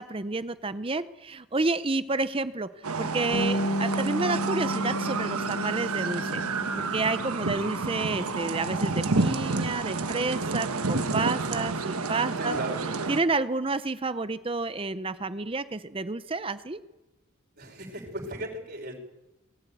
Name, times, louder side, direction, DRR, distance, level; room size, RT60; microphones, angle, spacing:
voice 1, 0.0-12.6 13.1-16.8, right 3 dB, 25° right, 13 dB, 0.6 m, -30 dB
sound 1, 2.8-13.2, right 3 dB, 90° right, 1.4 m, -30 dB
Bass guitar, 3.3-9.6, equal, 65° left, 0.9 m, -34 dB
voice 2, 12.4-12.8 17.6-19.0, right 1 dB, 45° right, 1 dB, 5.5 m, -37 dB
21.0 x 15.5 x 9.2 m, 0.98 s
head